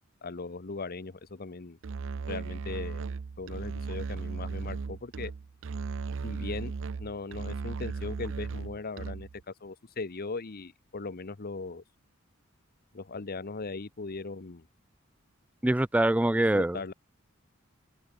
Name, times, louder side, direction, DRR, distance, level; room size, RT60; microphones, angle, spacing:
voice 1, 0.2-1.8 2.3-3.0 3.4-5.3 6.2-6.7 7.0-11.8 12.9-14.7 16.5-16.9, left 3 dB, 45° left, 0.9 m, -39 dB
Musical instrument, 1.8-9.4, right 5 dB, 65° right, 0.5 m, -36 dB
voice 2, 15.6-16.9, right 1 dB, 5° right, 0.3 m, -24 dB
open air
head